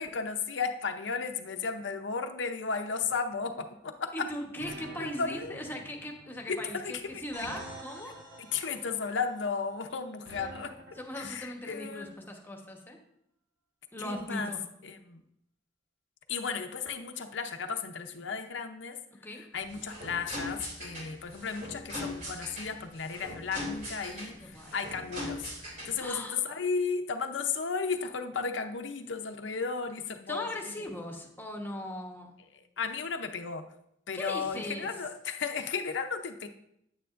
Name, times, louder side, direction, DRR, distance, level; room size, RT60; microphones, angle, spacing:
voice 1, 0.0-4.3 5.0-5.5 6.5-7.5 8.4-10.7 11.2-12.2 14.0-14.5 14.8-15.2 16.3-19.0 19.5-25.5 25.8-30.5 32.8-33.7 34.1-36.5, left 5 dB, 85° left, 6 dB, 0.6 m, -34 dB
sound 1, 3.0-11.2, right 1 dB, 65° right, 1.1 m, -48 dB
voice 2, 4.1-8.1 11.0-13.0 13.9-14.6 19.1-19.5 24.4-24.8 26.0-26.4 30.3-32.3 34.1-34.9, left 1 dB, 10° left, 2 dB, 1.1 m, -39 dB
sound 2, 7.3-11.0, equal, 25° right, 2.7 m, -54 dB
sound 3, 19.5-26.1, left 1 dB, 45° right, 2.9 m, -40 dB
9.3 x 9.0 x 2.5 m, 0.76 s
head